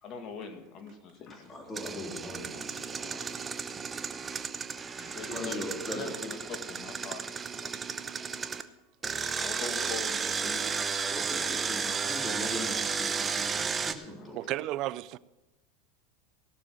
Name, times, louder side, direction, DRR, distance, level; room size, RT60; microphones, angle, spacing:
voice 1, 0.0-1.5 5.0-7.3 7.6-7.7 9.3-10.9 14.2-14.3, left 5 dB, 45° left, 2.1 m, -42 dB
voice 2, 1.5-3.5 4.7-6.0 11.0-14.4, left 1 dB, 20° left, 3.5 m, -40 dB
Engine, 1.7-8.6 9.0-13.9, right 5 dB, 25° right, 0.8 m, -33 dB
voice 3, 14.3-15.2, right 15 dB, 55° right, 0.5 m, -33 dB
17.0 x 6.9 x 6.0 m
hypercardioid pair, 95°, 0 cm